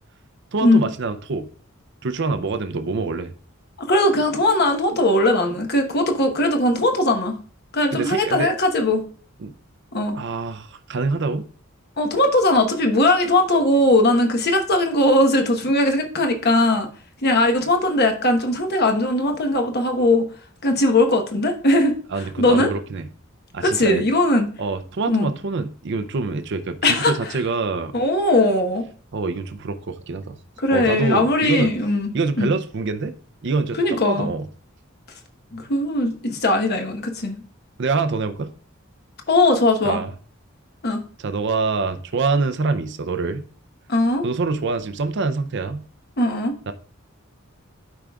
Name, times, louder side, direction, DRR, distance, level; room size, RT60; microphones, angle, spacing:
voice 1, 0.5-1.5 2.0-3.3 7.9-8.5 9.4-9.5 10.1-11.4 22.1-23.0 23.5-24.0 24.6-27.9 29.1-30.4 30.7-31.7 32.1-33.1 33.4-33.8 34.1-34.5 37.8-38.5 39.8-40.1 41.2-43.4 44.2-45.8 46.7-46.8, right 4 dB, 60° right, 9 dB, 0.5 m, -25 dB
voice 2, 3.8-7.4 7.7-9.0 9.9-10.1 12.0-16.9 17.2-20.3 20.6-22.0 22.4-22.7 23.6-24.5 25.1-25.3 26.8-27.3 27.9-28.8 30.6-32.5 33.8-34.3 35.5-37.4 39.3-40.0 40.8-41.0 43.9-44.2 46.2-46.5, left 1 dB, 50° left, 4 dB, 1.1 m, -19 dB
12.5 x 4.8 x 2.3 m, 0.43 s
head